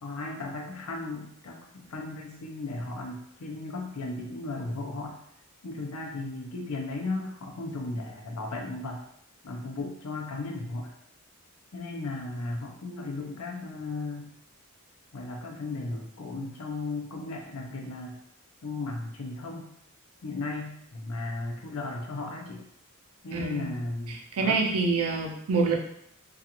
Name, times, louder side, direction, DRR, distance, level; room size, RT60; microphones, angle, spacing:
voice 1, 0.0-5.2 5.6-9.0 9.4-10.9 11.7-14.3 15.1-18.2 18.6-19.7 20.2-22.7 23.2-24.6, left 2 dB, 85° left, 0 dB, 0.6 m, -35 dB
voice 2, 23.3-23.7 24.1-25.8, right 4 dB, 75° right, 2 dB, 0.5 m, -26 dB
2.4 x 2.4 x 2.8 m, 0.71 s
head